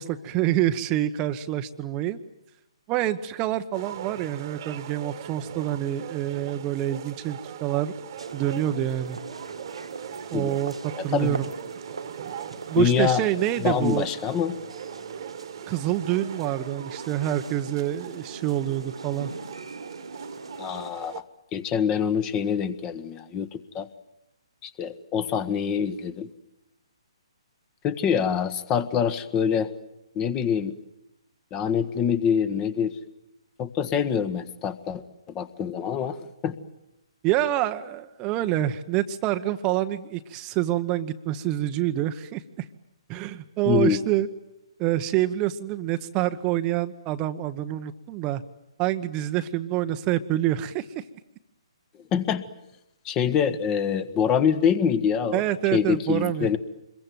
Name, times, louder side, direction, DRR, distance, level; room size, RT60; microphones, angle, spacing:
voice 1, 0.0-2.2 2.9-7.9 8.3-9.2 10.3-10.7 11.0-11.4 12.7-14.1 15.7-19.3 37.2-42.7 43.1-44.3 44.8-48.4 48.8-51.0 55.3-56.5, right 13 dB, 25° right, 9 dB, 1.0 m, -26 dB
sound 1, 3.7-21.2, right 10 dB, 45° right, 1.6 m, -41 dB
sound 2, 8.2-20.9, right 3 dB, 80° right, 1.9 m, -40 dB
voice 2, 11.0-11.4 12.7-13.3 13.6-14.5 20.6-21.2 21.5-23.9 24.6-26.3 27.8-29.7 30.1-30.8 31.5-33.0 33.6-35.0 35.3-36.2 36.4-36.6 43.6-44.0 52.1-52.4 53.0-55.4 55.7-56.6, left 7 dB, 20° left, 13 dB, 1.5 m, -25 dB
26.5 x 22.5 x 9.2 m, 0.88 s
figure-of-eight pair, 135°, 3 cm